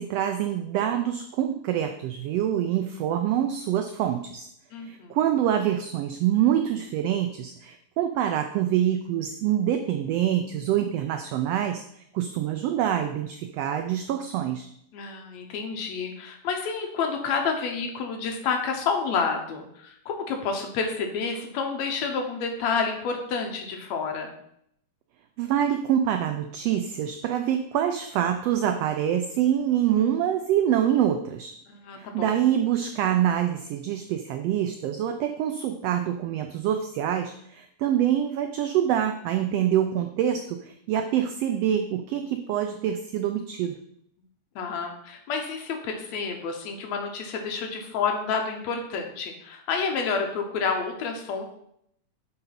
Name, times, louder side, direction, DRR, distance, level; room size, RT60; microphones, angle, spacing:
voice 1, 0.0-4.5 4.8-11.8 12.1-14.7 25.4-31.5 31.9-43.8, right 10 dB, 85° right, 7 dB, 1.4 m, -25 dB
voice 2, 4.7-5.1 14.9-24.3 31.7-32.3 44.6-51.4, left 5 dB, 75° left, 3 dB, 2.1 m, -29 dB
6.6 x 3.8 x 5.8 m, 0.71 s
omnidirectional pair, 3.3 m